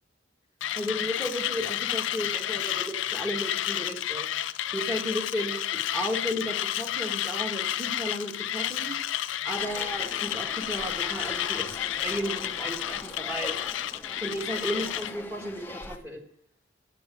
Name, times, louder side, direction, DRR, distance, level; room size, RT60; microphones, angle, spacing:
Mechanisms, 0.6-15.1, left 11 dB, 75° left, 0.4 m, -31 dB
voice 1, 0.7-4.3 4.7-8.9 9.4-13.6 14.2-16.2, equal, 15° right, 0 dB, 1.6 m, -34 dB
sound 1, 9.6-16.0, left 2 dB, 10° left, 0.7 m, -41 dB
8.5 x 8.2 x 9.2 m, 0.67 s
head